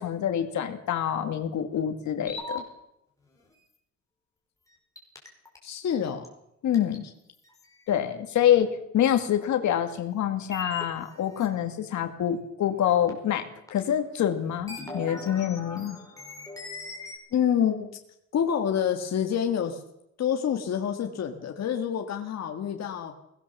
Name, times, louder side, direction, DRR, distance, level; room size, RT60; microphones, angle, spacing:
voice 1, 0.0-2.6 6.6-7.0 7.9-8.7 8.9-13.4 13.7-16.0, left 10 dB, 80° left, 7 dB, 2.3 m, -26 dB
sound 1, 2.3-2.6 5.0-5.6 6.2-6.3 6.7-7.0 7.6-7.7 10.5-11.5 13.1-13.2 13.7-13.8 14.5-17.2, left 2 dB, 10° left, 5.1 m, -38 dB
voice 2, 5.6-6.3 17.3-17.9 18.3-19.8 20.2-23.1, left 8 dB, 65° left, 4 dB, 1.8 m, -27 dB
22.0 x 17.5 x 7.0 m, 0.81 s
cardioid pair, 145°, 29 cm